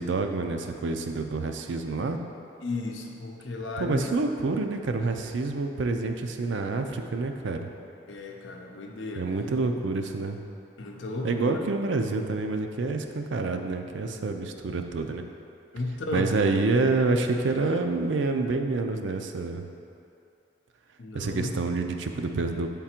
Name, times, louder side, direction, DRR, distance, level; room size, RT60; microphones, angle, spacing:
voice 1, 0.0-2.2 3.8-7.7 9.2-10.4 11.2-15.2 16.1-19.7 21.1-22.7, right 3 dB, 80° right, 5 dB, 0.5 m, -27 dB
voice 2, 2.6-4.1 8.1-9.6 10.8-11.6 15.7-16.3 21.0-21.5, left 2 dB, 90° left, 1 dB, 0.7 m, -34 dB
8.0 x 3.7 x 4.3 m, 2.6 s
head